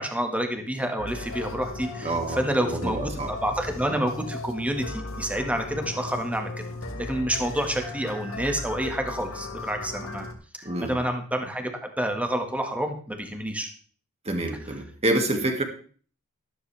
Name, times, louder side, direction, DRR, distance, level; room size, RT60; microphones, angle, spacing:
voice 1, 0.0-6.5 7.0-10.3 10.6-11.7 12.0-13.7, right 1 dB, 5° right, 4 dB, 1.8 m, -28 dB
sound 1, 1.0-10.3, left 2 dB, 65° left, 2.1 m, -36 dB
voice 2, 2.0-3.3 10.6-11.0 14.3-15.6, right 1 dB, 30° right, 4 dB, 2.3 m, -27 dB
13.0 x 12.5 x 3.5 m, 0.42 s
head